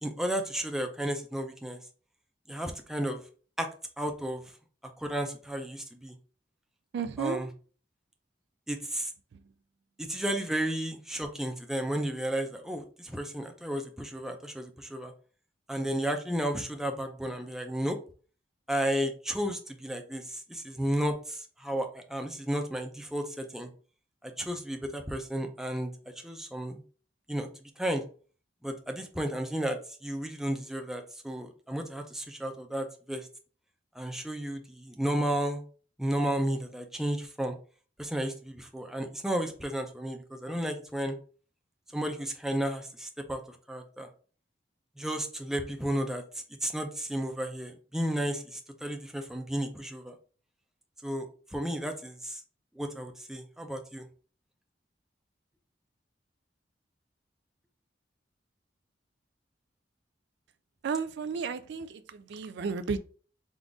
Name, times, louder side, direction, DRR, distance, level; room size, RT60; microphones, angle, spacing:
voice 1, 0.0-1.8 2.5-3.2 3.6-3.7 4.0-4.4 5.0-6.1 7.2-7.5 8.7-9.1 10.0-15.1 15.7-18.0 18.7-23.7 24.2-25.9 26.2-26.8 27.3-27.5 27.8-28.0 28.6-33.3 33.9-35.6 36.0-37.5 38.0-41.2 41.9-44.1 45.0-46.2 46.6-50.1 51.0-52.4 52.8-54.1, right 1 dB, 5° right, 0.5 m, -33 dB
voice 2, 6.9-7.4 60.8-63.0, right 5 dB, 65° right, 0.3 m, -33 dB
3.8 x 2.4 x 3.5 m
head